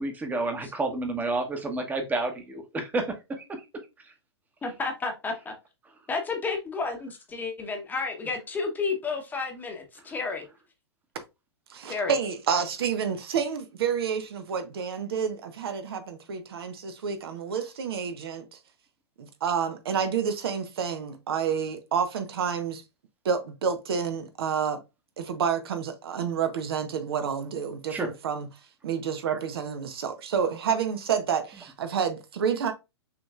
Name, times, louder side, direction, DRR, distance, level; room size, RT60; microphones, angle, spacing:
voice 1, 0.0-3.6 27.9-28.1, right 2 dB, 10° right, 1.0 m, -30 dB
voice 2, 4.6-5.5 6.1-10.4 11.9-12.1, left 4 dB, 10° left, 1.0 m, -31 dB
voice 3, 11.7-18.6 19.2-22.8 23.2-24.8 25.2-28.5 28.8-32.7, right 7 dB, 60° right, 0.8 m, -29 dB
6.0 x 3.1 x 2.4 m
figure-of-eight pair, 115°, 14 cm